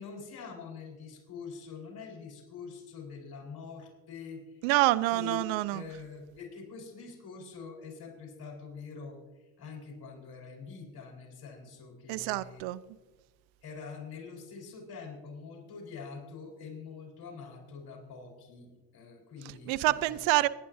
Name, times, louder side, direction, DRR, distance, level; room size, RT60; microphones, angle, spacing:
voice 1, 0.0-4.7 5.0-5.4 5.7-12.6 13.6-20.2, left 5 dB, 50° left, 4.6 m, -45 dB
voice 2, 4.6-5.8 12.1-12.8 19.7-20.5, right 18 dB, 70° right, 0.7 m, -27 dB
25.0 x 10.0 x 2.7 m
hypercardioid pair, 65°, 48 cm